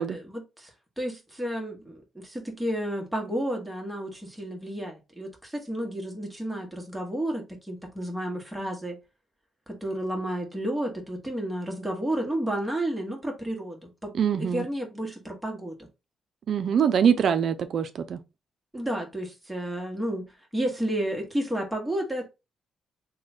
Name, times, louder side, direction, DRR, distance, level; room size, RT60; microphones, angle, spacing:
voice 1, 0.0-9.0 9.7-15.9 18.7-20.3 20.5-22.3, right 1 dB, 5° right, 1.3 m, -31 dB
voice 2, 14.2-14.7 16.5-18.2, right 8 dB, 65° right, 0.4 m, -23 dB
3.1 x 2.3 x 4.1 m
supercardioid pair, 65°, 0 cm